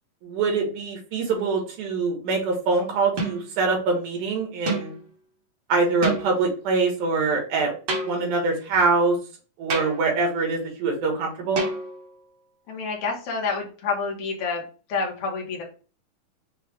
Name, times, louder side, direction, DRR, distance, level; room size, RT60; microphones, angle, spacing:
voice 1, 0.2-5.0 5.7-7.7 8.0-9.2 9.6-11.6, right 4 dB, 75° right, 1 dB, 2.7 m, -24 dB
sound 1, 1.3-1.7 3.2-3.6 4.7-5.0 6.0-6.5 7.9-8.4 9.7-10.2 11.6-12.2, right 2 dB, 55° right, 1.8 m, -29 dB
voice 2, 12.7-14.6 14.9-15.6, left 4 dB, 60° left, 0 dB, 1.6 m, -28 dB
6.0 x 2.4 x 3.3 m, 0.37 s
omnidirectional pair, 3.8 m